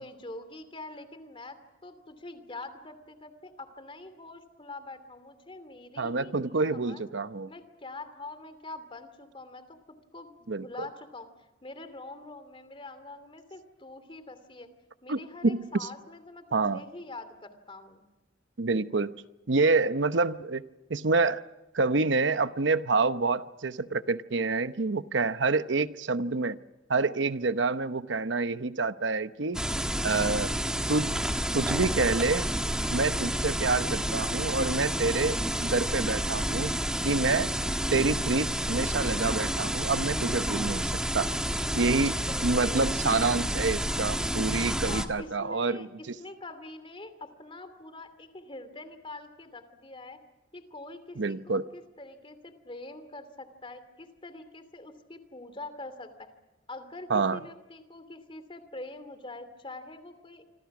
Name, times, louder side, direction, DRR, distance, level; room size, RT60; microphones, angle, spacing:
voice 1, 0.0-7.0 7.5-11.3 11.6-14.7 15.0-18.0 33.6-33.8 42.2-42.8 44.9-50.2 50.5-56.3 56.7-60.4, left 2 dB, 30° left, 10 dB, 2.8 m, -44 dB
voice 2, 6.0-7.5 10.5-10.7 15.1-15.9 16.5-16.8 18.6-19.1 19.5-20.6 20.9-21.4 21.7-26.6 26.9-29.6 30.0-30.5 30.9-31.1 31.5-32.5 32.9-36.7 37.0-37.5 37.9-41.3 41.7-42.2 42.4-45.9 51.2-51.6 57.1-57.4, right 3 dB, 65° right, 12 dB, 0.9 m, -27 dB
sound 1, 29.5-45.1, equal, 5° right, 1.5 m, -30 dB
27.0 x 26.0 x 6.1 m, 1.0 s
head